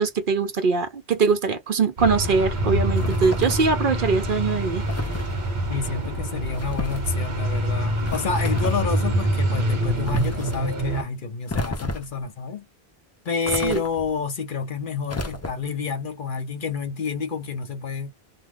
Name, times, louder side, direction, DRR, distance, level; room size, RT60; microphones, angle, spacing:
voice 1, 0.0-4.8 13.6-13.8, right 5 dB, 60° right, 0.7 m, -22 dB
sound 1, 2.0-11.0, right 1 dB, 30° right, 0.9 m, -25 dB
sound 2, 3.0-3.7 4.9-5.3 6.5-7.1 8.0-8.8 10.0-10.6 11.5-12.2 13.4-14.2 15.1-15.8, left 2 dB, 25° left, 0.4 m, -32 dB
voice 2, 5.7-12.7 13.2-18.1, left 5 dB, 55° left, 0.9 m, -29 dB
2.3 x 2.3 x 3.3 m
omnidirectional pair, 1.1 m